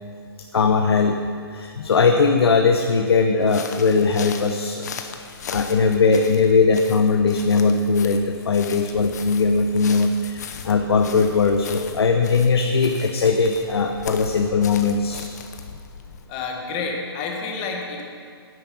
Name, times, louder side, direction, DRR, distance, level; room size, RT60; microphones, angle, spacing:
voice 1, 0.5-1.2 1.5-15.2, left 4 dB, 75° left, 4 dB, 0.8 m, -19 dB
sound 1, 3.4-16.3, left 6 dB, 40° left, 0.8 m, -38 dB
voice 2, 16.3-18.0, left 4 dB, 15° left, 1 dB, 1.0 m, -29 dB
9.7 x 8.8 x 6.2 m, 2.3 s
hypercardioid pair, 175°, 13 cm